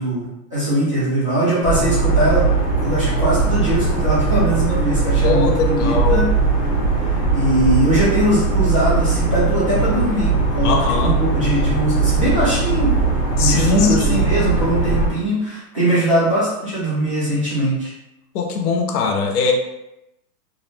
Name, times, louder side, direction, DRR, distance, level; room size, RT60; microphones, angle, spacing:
voice 1, 0.0-2.5 2.8-6.3 7.3-12.9 13.3-17.9, right 1 dB, 20° right, -11 dB, 0.4 m, -21 dB
sound 1, 1.6-15.1, right 3 dB, 20° left, 0.7 m, -19 dB
voice 2, 5.2-6.3 10.6-11.2 13.4-14.4 18.3-19.5, left 5 dB, 70° left, 2 dB, 0.6 m, -21 dB
2.4 x 2.0 x 3.0 m, 0.89 s
supercardioid pair, 180°, 48 cm